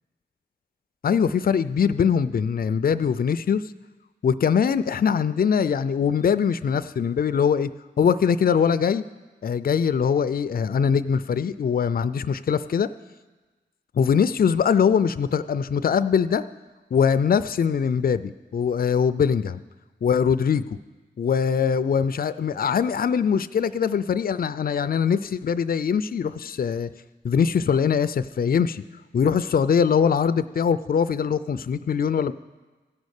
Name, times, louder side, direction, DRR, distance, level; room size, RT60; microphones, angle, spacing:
voice 1, 1.0-3.6 4.2-7.7 8.0-9.0 9.4-12.9 14.0-16.4 16.9-19.6 20.0-20.6 21.2-26.9 27.2-28.8 29.1-32.3, left 7 dB, 50° left, 13 dB, 0.4 m, -22 dB
15.5 x 5.3 x 6.5 m, 1.2 s
wide cardioid pair, 55°, 19 cm